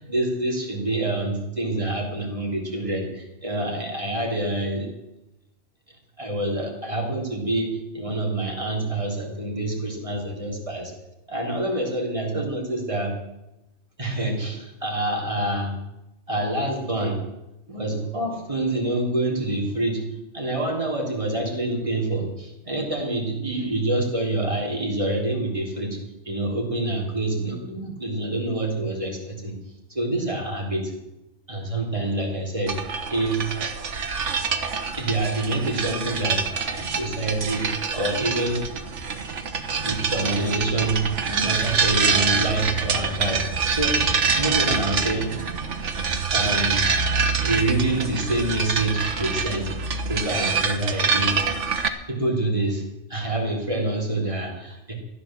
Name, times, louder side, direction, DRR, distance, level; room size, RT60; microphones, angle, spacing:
voice 1, 0.0-4.9 6.2-10.9 11.3-13.2 14.0-15.8 16.3-17.2 17.7-20.1 20.3-26.0 26.3-29.5 29.9-30.9 31.5-32.8 33.1-33.5 35.0-36.4 36.8-38.6 39.8-44.0 44.4-45.3 46.1-46.9 47.4-49.7 50.1-51.4 52.1-52.8 53.1-54.9, right 2 dB, 25° right, 0 dB, 3.6 m, -26 dB
sound 1, 32.7-51.9, right 5 dB, 85° right, 1.5 m, -25 dB
15.0 x 11.5 x 7.5 m, 0.94 s
omnidirectional pair, 1.2 m